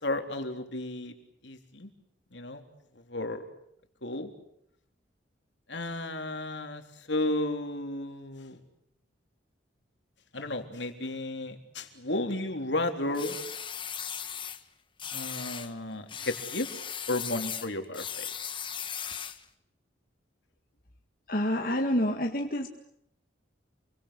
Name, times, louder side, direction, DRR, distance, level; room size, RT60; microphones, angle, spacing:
voice 1, 0.0-1.1 1.4-1.9 2.3-2.6 3.1-3.4 4.0-4.3 5.7-8.6 10.3-13.4 15.1-16.7 17.1-18.3, left 2 dB, 70° left, 6 dB, 3.7 m, -33 dB
sound 1, 13.1-14.6 15.0-15.7 16.1-19.4, left 8 dB, 25° left, 1.4 m, -37 dB
voice 2, 21.3-22.7, left 1 dB, 45° left, 3 dB, 1.9 m, -28 dB
29.0 x 24.0 x 8.2 m, 0.74 s
head